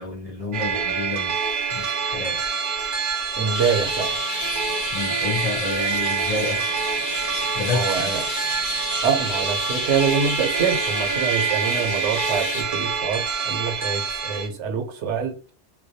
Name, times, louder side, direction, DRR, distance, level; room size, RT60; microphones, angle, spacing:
voice 1, 0.0-2.4 4.9-6.7 7.6-8.1, left 4 dB, 65° left, 0.3 m, -29 dB
sound 1, 0.5-14.5, right 6 dB, 55° right, 0.7 m, -26 dB
voice 2, 3.4-4.2 7.7-8.2 9.0-15.3, right 6 dB, 85° right, 1.0 m, -25 dB
sound 2, 3.5-12.6, left 5 dB, 80° left, 0.9 m, -32 dB
2.3 x 2.2 x 2.6 m
omnidirectional pair, 1.2 m